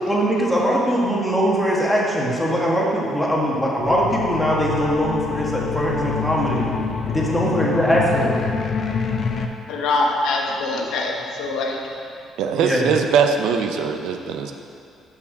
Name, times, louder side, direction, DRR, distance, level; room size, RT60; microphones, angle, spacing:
voice 1, 0.1-6.7 7.0-8.4 12.6-12.9, equal, 5° left, -5 dB, 1.6 m, -21 dB
sound 1, 3.8-9.5, left 6 dB, 50° left, 0.6 m, -26 dB
voice 2, 9.7-11.8, left 2 dB, 90° left, 0 dB, 1.1 m, -23 dB
voice 3, 12.4-14.5, right 6 dB, 85° right, 5 dB, 0.6 m, -21 dB
6.6 x 5.8 x 6.6 m, 2.4 s
cardioid pair, 120°, 0 cm